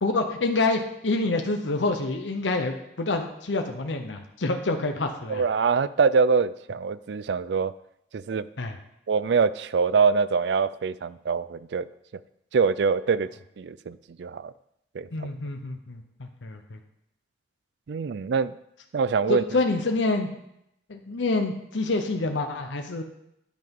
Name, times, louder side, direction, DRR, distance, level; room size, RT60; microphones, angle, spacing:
voice 1, 0.0-5.4 8.6-8.7 15.1-16.8 19.3-20.3 20.9-23.0, left 2 dB, 85° left, 5 dB, 0.9 m, -27 dB
voice 2, 5.3-7.7 8.1-8.5 9.1-11.9 12.5-13.3 13.6-14.5 14.9-15.1 17.9-18.5 18.9-19.4, right 5 dB, 70° right, 17 dB, 0.4 m, -24 dB
10.5 x 5.9 x 5.3 m, 0.80 s
head